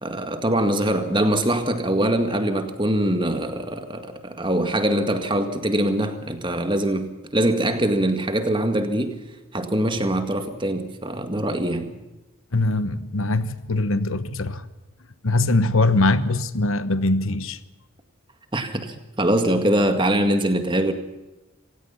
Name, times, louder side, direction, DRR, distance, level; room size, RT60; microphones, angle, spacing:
voice 1, 0.0-9.2 9.5-12.0 18.5-20.9, right 1 dB, 20° right, 1.9 m, -23 dB
voice 2, 12.5-14.7 15.2-17.6, left 2 dB, 65° left, 1.2 m, -22 dB
27.0 x 17.0 x 5.8 m
head